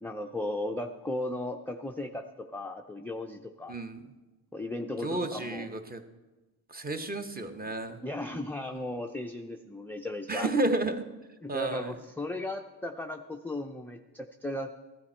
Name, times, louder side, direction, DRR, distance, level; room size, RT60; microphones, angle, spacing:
voice 1, 0.0-3.7 4.5-5.7 8.0-10.5 11.4-14.7, left 1 dB, 5° left, 3 dB, 0.3 m, -36 dB
voice 2, 3.7-4.0 5.0-6.0 6.7-8.0 10.3-11.0 11.5-11.9, right 2 dB, 20° right, 7 dB, 0.8 m, -31 dB
15.0 x 11.5 x 4.3 m, 1.2 s
cardioid pair, 120°, 47 cm